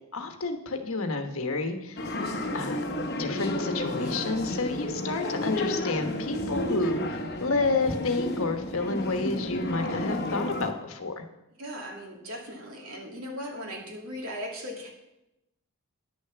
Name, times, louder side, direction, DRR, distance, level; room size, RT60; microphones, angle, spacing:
voice 1, 0.1-2.0 2.5-2.8 3.2-11.2, left 3 dB, 65° left, 6 dB, 1.2 m, -30 dB
sound 1, 2.0-10.7, left 1 dB, 45° left, 0.9 m, -31 dB
voice 2, 11.6-14.9, equal, 70° right, 0 dB, 2.4 m, -38 dB
10.5 x 6.7 x 6.9 m, 0.90 s
head